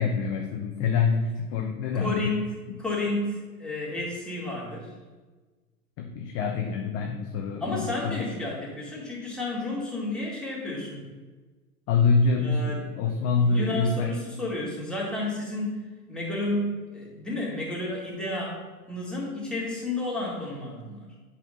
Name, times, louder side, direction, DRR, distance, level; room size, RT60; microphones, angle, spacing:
voice 1, 0.0-2.3 6.0-8.3 11.9-14.2, left 4 dB, 30° left, 3 dB, 0.7 m, -26 dB
voice 2, 1.9-4.9 7.6-11.1 12.4-12.9 13.3-15.8 16.1-21.1, left 2 dB, ahead, -5 dB, 2.3 m, -31 dB
8.3 x 4.2 x 5.1 m, 1.3 s
figure-of-eight pair, 95°, 47 cm